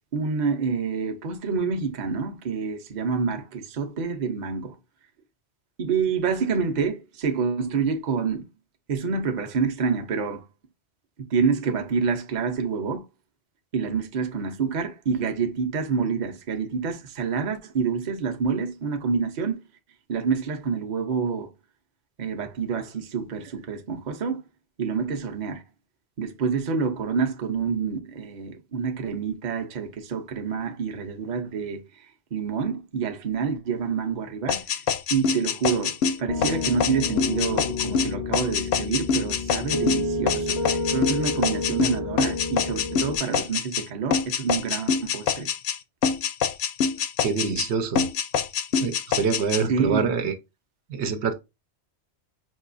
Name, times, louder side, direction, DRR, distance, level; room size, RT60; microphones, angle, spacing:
voice 1, 0.1-4.8 5.8-8.5 8.9-10.4 11.3-13.1 13.7-19.6 20.1-21.5 22.2-24.4 24.8-25.6 26.2-31.8 32.3-34.6 35.1-45.5 49.7-50.1, right 5 dB, 45° right, 0.7 m, -27 dB
sound 1, 34.5-43.8 44.1-45.8 46.0-47.7 48.0-49.6, left 6 dB, 70° left, 0.8 m, -25 dB
Piano, 36.3-43.2, left 2 dB, 35° left, 0.5 m, -30 dB
voice 2, 47.2-48.1 48.8-50.3 50.9-51.3, right 5 dB, 75° right, 1.0 m, -25 dB
5.4 x 2.9 x 2.5 m
omnidirectional pair, 1.2 m